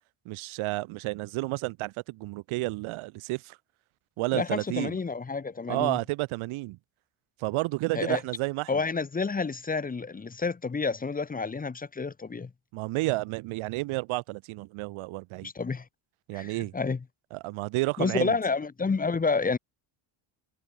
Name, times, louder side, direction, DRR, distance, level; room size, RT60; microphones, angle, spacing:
voice 1, 0.2-3.6 4.2-4.9 5.7-6.8 7.4-8.8 12.7-15.5 16.3-16.7 17.3-18.4, right 21 dB, 75° right, 1.0 m, -31 dB
voice 2, 4.3-6.0 7.9-8.2 8.7-12.5 15.4-15.8 16.3-17.0 18.0-19.6, left 4 dB, 15° left, 1.0 m, -29 dB
cardioid pair, 120°, 49 cm